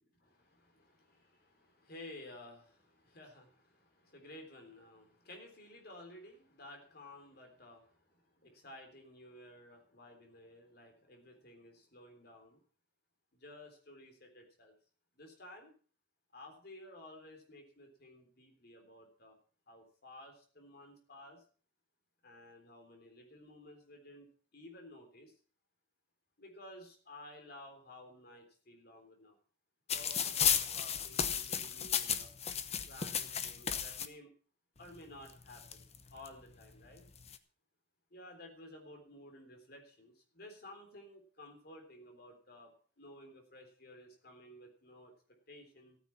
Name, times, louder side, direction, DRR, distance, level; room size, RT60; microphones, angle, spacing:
voice 1, 0.2-12.6 13.3-14.7 15.2-15.7 16.3-19.4 19.7-21.4 22.2-25.3 26.4-29.4 29.9-32.3 32.9-34.3 34.8-35.9 36.1-37.0 38.1-42.7 43.0-45.1 45.5-46.0, left 1 dB, 55° left, 3 dB, 3.7 m, -54 dB
sound 1, 29.9-34.1 35.0-35.1 35.3-36.3 37.0-37.4, left 8 dB, 35° left, 0.9 m, -34 dB
15.0 x 9.6 x 5.8 m, 0.43 s
head